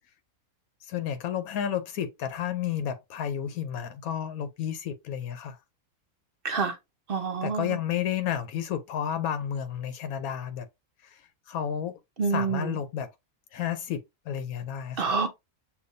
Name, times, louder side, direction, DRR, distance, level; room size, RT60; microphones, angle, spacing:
voice 1, 0.9-5.6 7.4-10.7 11.1-11.2 11.5-11.9 12.3-13.1 13.5-14.0 14.3-15.1, left 9 dB, 85° left, 1.1 m, -31 dB
voice 2, 6.4-6.8 7.1-7.8 12.2-12.8 15.0-15.3, right 4 dB, 55° right, 0.6 m, -27 dB
6.7 x 2.6 x 2.5 m
omnidirectional pair, 1.5 m